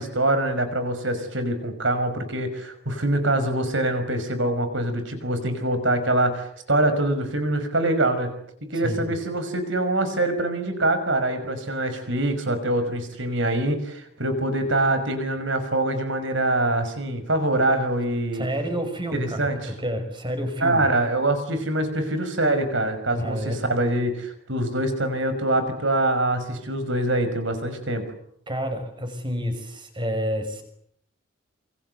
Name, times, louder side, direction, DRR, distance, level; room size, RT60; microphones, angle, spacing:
voice 1, 0.0-8.3 8.7-18.4 19.1-19.6 20.6-28.0, right 1 dB, 60° right, 10 dB, 5.8 m, -24 dB
voice 2, 8.7-9.2 18.3-20.9 23.1-23.6 28.5-30.6, equal, 25° right, 7 dB, 5.8 m, -29 dB
28.0 x 25.5 x 8.0 m, 0.69 s
head